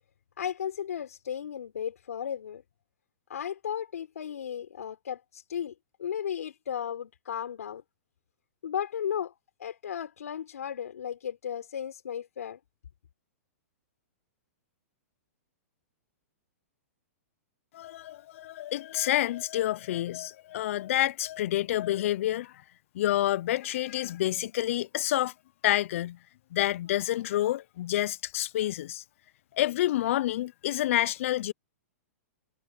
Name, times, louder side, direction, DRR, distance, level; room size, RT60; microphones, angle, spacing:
voice 1, 0.4-2.6 3.3-7.8 8.6-9.3 9.6-12.6, left 9 dB, 85° left, 4.8 m, -35 dB
voice 2, 17.7-22.5 22.9-25.3 25.6-26.2 26.5-29.0 29.5-31.5, left 14 dB, 60° left, 0.5 m, -28 dB
hypercardioid pair, 140°, 8 cm